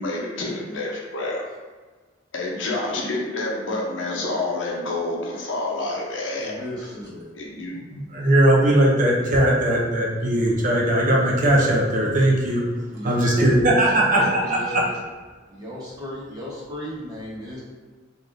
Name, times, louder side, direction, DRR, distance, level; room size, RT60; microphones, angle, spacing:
voice 1, 0.0-1.4 2.3-6.5 7.3-7.7, left 2 dB, 70° left, -2 dB, 0.6 m, -28 dB
voice 2, 6.4-7.3 12.9-15.0 15.5-17.6, left 1 dB, 20° right, -8 dB, 0.9 m, -35 dB
voice 3, 7.9-12.6 13.0-14.8, right 1 dB, 45° right, -2 dB, 0.5 m, -19 dB
3.4 x 2.5 x 2.5 m, 1.4 s
head